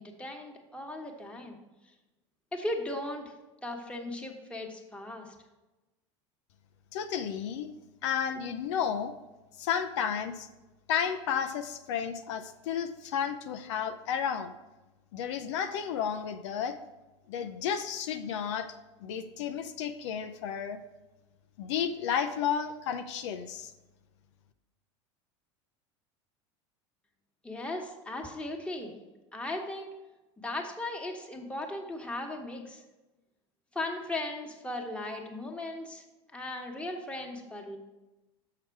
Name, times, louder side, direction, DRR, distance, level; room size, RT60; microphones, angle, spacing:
voice 1, 0.0-1.6 2.5-3.3 3.6-5.3 27.4-28.9 29.3-29.9 30.4-32.8 33.7-36.0 36.3-37.8, left 1 dB, 5° left, 1 dB, 1.3 m, -37 dB
voice 2, 6.9-7.7 8.0-9.1 9.6-10.5 10.9-14.5 15.1-16.7 17.3-18.7 19.0-20.8 21.6-23.7, left 8 dB, 75° left, 8 dB, 0.5 m, -32 dB
6.6 x 5.8 x 4.6 m, 1.1 s
hypercardioid pair, 95°, 15 cm